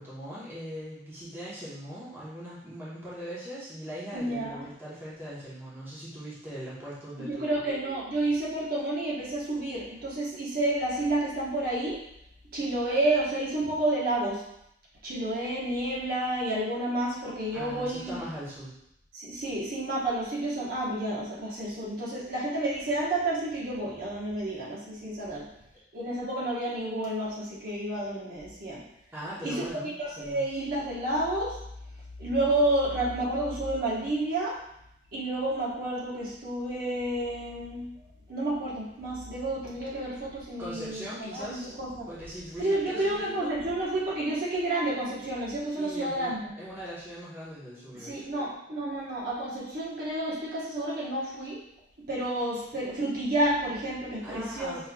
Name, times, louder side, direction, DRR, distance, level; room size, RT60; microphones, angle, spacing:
voice 1, 0.0-7.6 17.5-18.7 25.7-25.8 29.1-29.9 30.2-30.4 40.6-41.7 42.1-43.5 45.8-48.2 54.2-54.9, equal, 15° right, -9 dB, 1.1 m, -40 dB
voice 2, 4.1-4.7 7.2-12.0 12.5-14.4 15.0-18.2 19.1-25.5 25.9-28.8 29.4-29.6 30.0-31.6 32.2-34.5 35.1-37.8 38.3-42.1 42.6-46.5 47.9-51.6 52.1-54.9, right 1 dB, 55° right, -6 dB, 1.2 m, -30 dB
5.3 x 3.2 x 2.3 m, 0.77 s
head